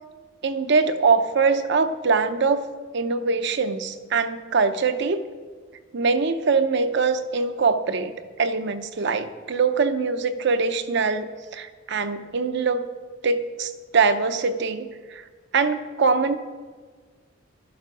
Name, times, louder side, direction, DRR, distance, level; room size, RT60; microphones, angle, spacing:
voice 1, 0.4-2.7 2.9-5.2 5.9-8.1 8.4-12.8 13.2-15.2 15.5-16.4, right 4 dB, 65° right, 10 dB, 0.7 m, -23 dB
12.0 x 7.2 x 6.0 m, 1.5 s
head